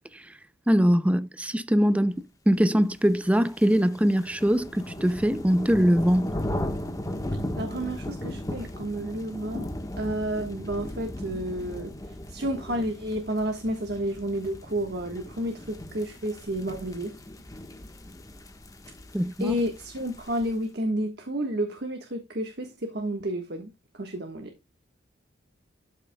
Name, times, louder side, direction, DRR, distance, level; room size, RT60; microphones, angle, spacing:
voice 1, 0.7-6.3 19.1-19.5, equal, 5° right, 0.4 m, -22 dB
sound 1, 3.1-20.6, left 1 dB, 15° left, 1.2 m, -37 dB
voice 2, 7.6-9.7 10.0-17.1 19.4-23.7 23.9-24.5, right 1 dB, 55° right, 1.4 m, -31 dB
12.5 x 6.6 x 2.2 m
head